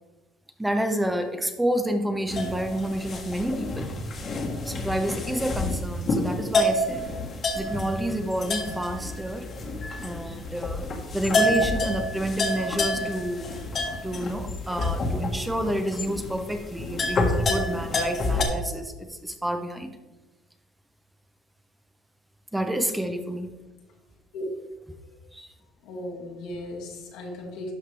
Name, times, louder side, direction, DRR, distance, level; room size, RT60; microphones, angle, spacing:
voice 1, 0.6-3.9 4.6-7.1 7.5-9.5 10.0-10.8 11.1-13.5 14.0-20.0 22.5-23.5 25.3-25.5, right 1 dB, 5° right, 6 dB, 0.7 m, -29 dB
sound 1, 2.3-18.4, left 2 dB, 40° left, 1.4 m, -28 dB
voice 2, 25.8-27.7, left 1 dB, 80° left, -1 dB, 2.0 m, -36 dB
12.0 x 5.0 x 3.3 m, 1.1 s
cardioid pair, 115°, 0 cm